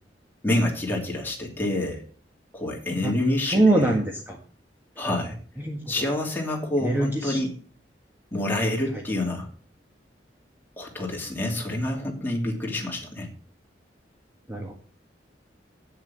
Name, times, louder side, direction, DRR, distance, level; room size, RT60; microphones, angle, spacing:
voice 1, 0.4-2.0 2.5-3.9 5.0-5.4 5.9-7.5 8.3-9.5 10.8-13.3, left 1 dB, 10° left, -1 dB, 2.9 m, -27 dB
voice 2, 3.5-4.4 5.6-5.9 6.8-7.4 8.9-9.0 14.5-14.7, right 2 dB, 10° right, 0 dB, 1.5 m, -23 dB
8.9 x 7.2 x 7.6 m, 0.44 s
head